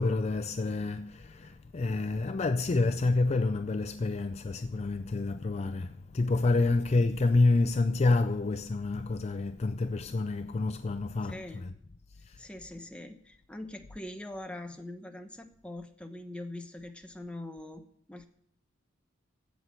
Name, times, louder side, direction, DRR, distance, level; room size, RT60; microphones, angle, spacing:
voice 1, 0.0-11.4, left 3 dB, 30° left, 0.4 m, -28 dB
voice 2, 11.2-11.6 12.4-17.8 18.1-18.3, left 1 dB, 5° left, 1.0 m, -43 dB
15.5 x 5.8 x 7.7 m
head